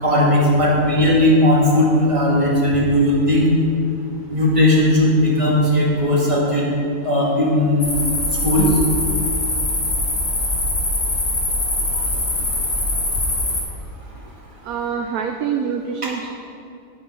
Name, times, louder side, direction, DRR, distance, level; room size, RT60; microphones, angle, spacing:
voice 1, 0.0-3.5 4.3-6.6 7.0-7.9 8.4-8.7, left 1 dB, 20° right, -4 dB, 2.1 m, -17 dB
sound 1, 7.8-13.6, left 1 dB, 85° left, 2.3 m, -22 dB
voice 2, 14.6-16.3, right 7 dB, 85° right, 4 dB, 1.1 m, -25 dB
9.2 x 8.3 x 5.7 m, 2.5 s
omnidirectional pair, 1.5 m